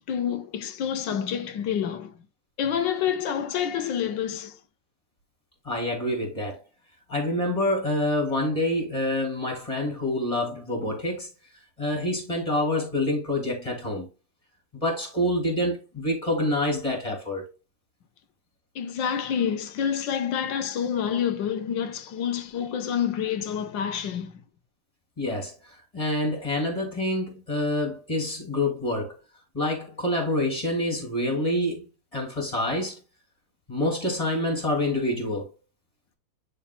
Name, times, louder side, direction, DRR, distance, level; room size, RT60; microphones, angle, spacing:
voice 1, 0.0-2.1 2.6-4.6 18.7-24.4, left 8 dB, 70° left, 1.4 m, -28 dB
voice 2, 5.6-6.6 7.1-11.3 11.8-14.1 14.8-17.4 25.2-25.5 25.9-29.1 29.5-33.0 33.7-35.5, left 1 dB, 15° left, 2.8 m, -27 dB
11.0 x 4.1 x 2.2 m
omnidirectional pair, 2.2 m